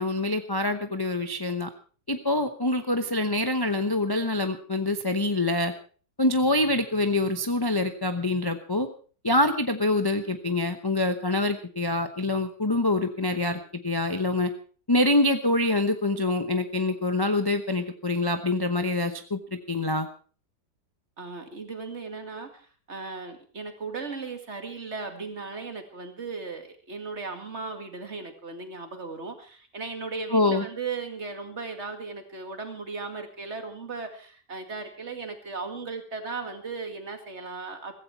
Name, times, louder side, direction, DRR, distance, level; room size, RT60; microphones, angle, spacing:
voice 1, 0.0-1.7 2.1-5.7 6.2-8.9 9.2-14.5 14.9-19.4 19.7-20.1 30.3-30.6, left 2 dB, 20° left, 7 dB, 0.6 m, -25 dB
voice 2, 21.2-37.9, right 4 dB, 40° right, 6 dB, 2.3 m, -37 dB
15.5 x 15.5 x 4.6 m, 0.41 s
omnidirectional pair, 1.9 m